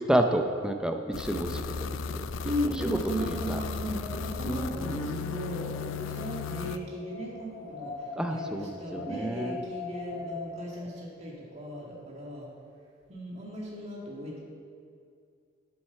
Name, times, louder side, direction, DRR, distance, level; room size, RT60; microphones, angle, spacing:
voice 1, 0.0-2.3 2.6-3.6 4.5-5.4 8.2-9.6, right 1 dB, 5° right, 5 dB, 0.5 m, -30 dB
sound 1, 1.1-6.8, left 5 dB, 70° left, 0.4 m, -35 dB
voice 2, 2.4-12.5 13.1-14.4, equal, 30° right, -3 dB, 1.8 m, -36 dB
Wind, 3.2-10.8, left 4 dB, 40° left, 1.5 m, -43 dB
7.8 x 7.5 x 5.7 m, 2.3 s
head